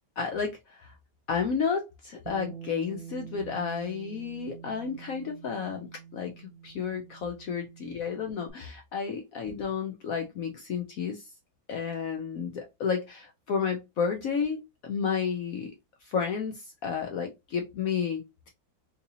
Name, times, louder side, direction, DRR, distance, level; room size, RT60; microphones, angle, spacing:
voice 1, 0.2-0.9 1.3-11.3 11.7-15.7 16.0-18.5, left 6 dB, 70° left, 0.8 m, -32 dB
Bass guitar, 2.3-8.5, right 8 dB, 70° right, 1.2 m, -46 dB
3.9 x 2.7 x 2.6 m
omnidirectional pair, 2.1 m